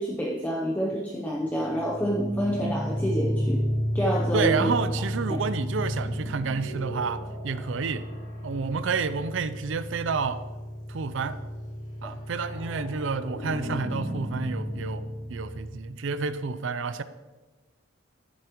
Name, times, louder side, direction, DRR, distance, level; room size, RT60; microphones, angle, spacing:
voice 1, 0.0-3.6 3.9-4.7 5.3-5.4 12.0-12.1, equal, 10° left, -3 dB, 0.7 m, -28 dB
sound 1, 1.6-16.2, equal, 85° left, 2.9 m, -33 dB
voice 2, 4.3-8.1 8.4-10.4 10.9-11.4 12.0-15.0 15.3-17.0, right 5 dB, 65° right, 13 dB, 0.5 m, -29 dB
13.0 x 7.4 x 3.0 m, 1.2 s
head